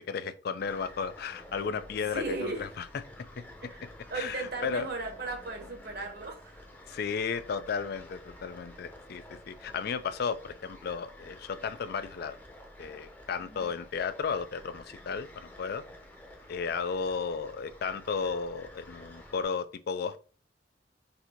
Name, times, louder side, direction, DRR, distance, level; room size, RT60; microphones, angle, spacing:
voice 1, 0.1-2.9 4.1-4.9 6.9-12.4 12.8-15.8 16.5-20.2, left 5 dB, 55° left, 0.4 m, -34 dB
sound 1, 0.6-19.4, left 1 dB, 10° left, 0.7 m, -51 dB
voice 2, 2.1-2.7 3.6-3.8 4.1-6.6 13.4-13.8, right 3 dB, 55° right, 1.2 m, -36 dB
4.1 x 2.7 x 4.4 m
head